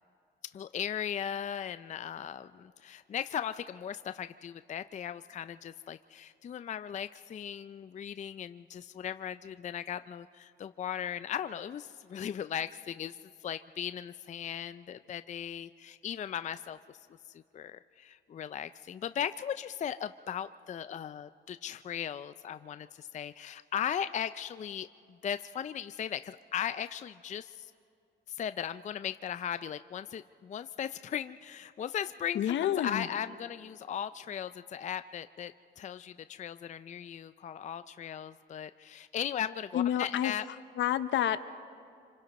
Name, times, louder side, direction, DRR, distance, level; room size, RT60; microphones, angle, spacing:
voice 1, 0.5-13.2 13.4-16.8 17.5-24.9 25.2-27.7 28.3-40.5, left 9 dB, 35° left, 12 dB, 0.4 m, -37 dB
voice 2, 32.3-33.1 39.7-40.3 40.8-41.5, left 11 dB, 70° left, 12 dB, 0.8 m, -29 dB
26.0 x 26.0 x 4.2 m, 2.5 s
cardioid pair, 90°, 20 cm